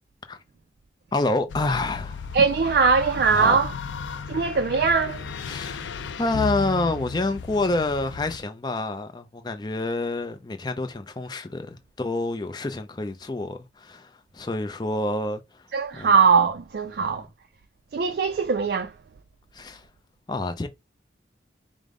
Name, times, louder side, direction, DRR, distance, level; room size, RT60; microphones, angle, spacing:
voice 1, 1.1-2.3 3.3-3.6 4.2-4.4 5.5-15.7 16.0-16.1 17.1-17.2 19.5-19.9 20.3-20.7, left 2 dB, 25° left, 0.4 m, -28 dB
sound 1, 1.5-8.4, left 4 dB, 85° left, 0.4 m, -35 dB
voice 2, 2.3-3.7 4.3-5.3 15.7-17.3 17.9-19.0, right 5 dB, 55° right, 0.3 m, -21 dB
5.1 x 2.0 x 3.7 m
head